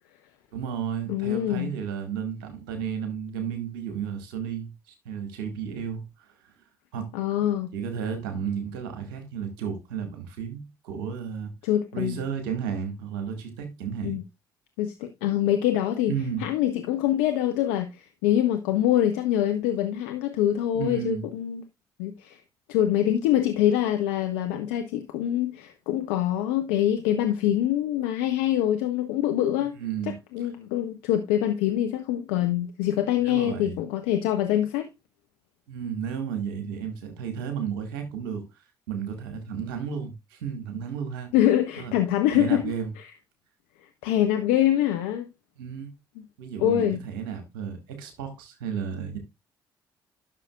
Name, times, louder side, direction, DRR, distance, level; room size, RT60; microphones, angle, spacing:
voice 1, 0.5-6.3 6.9-7.2 7.7-11.5 11.9-14.2 16.0-16.5 20.7-21.3 29.8-30.1 30.4-30.5 33.2-33.8 35.7-41.3 41.8-41.9 42.3-42.9 45.6-45.9 46.4-49.2, right 7 dB, 85° right, 1.9 m, -33 dB
voice 2, 1.1-1.7 7.1-7.7 11.6-12.2 14.0-14.2 14.8-16.1 16.4-21.6 22.0-22.4 22.7-29.8 30.1-34.9 41.3-42.6 44.0-45.3 46.6-47.0, left 12 dB, 80° left, 0.8 m, -24 dB
12.0 x 6.5 x 2.4 m
hypercardioid pair, 50°, 11 cm